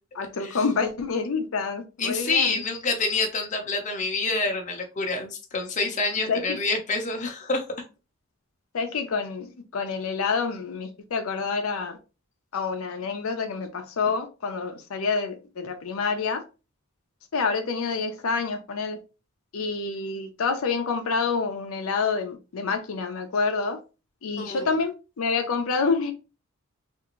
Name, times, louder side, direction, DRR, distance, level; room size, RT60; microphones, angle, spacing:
voice 1, 0.1-2.6 6.3-6.6 8.7-12.0 12.5-16.4 17.3-19.0 19.5-23.8 24.2-26.1, left 4 dB, 75° left, 0.5 m, -27 dB
voice 2, 2.0-7.6 24.4-24.7, left 3 dB, 35° left, 0.7 m, -27 dB
3.6 x 2.5 x 2.9 m
head